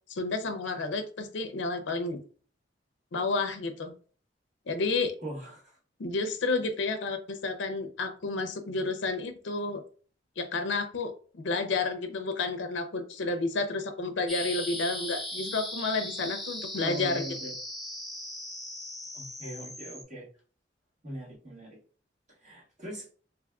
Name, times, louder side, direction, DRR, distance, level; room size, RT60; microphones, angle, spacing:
voice 1, 0.1-2.2 3.1-3.9 4.7-5.1 6.0-9.8 10.4-17.4, left 3 dB, 85° left, 7 dB, 0.5 m, -31 dB
voice 2, 5.2-5.6 16.8-17.5 19.1-20.3 21.0-21.8 22.4-23.1, equal, 40° right, -5 dB, 1.7 m, -40 dB
Blasting Into Hyper Drive, 14.3-20.0, left 1 dB, ahead, 0.5 m, -38 dB
3.4 x 3.2 x 2.3 m, 0.41 s
head